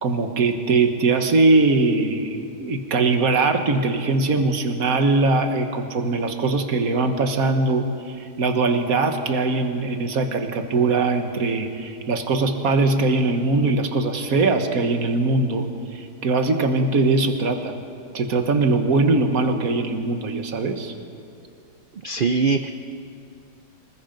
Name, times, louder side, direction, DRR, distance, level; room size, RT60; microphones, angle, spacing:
voice 1, 0.0-15.7 15.9-17.7 18.1-20.9, right 3 dB, 60° right, 6 dB, 1.8 m, -21 dB
voice 2, 22.0-22.7, right 4 dB, 80° right, 8 dB, 0.4 m, -21 dB
25.5 x 20.5 x 5.3 m, 2.5 s
omnidirectional pair, 1.8 m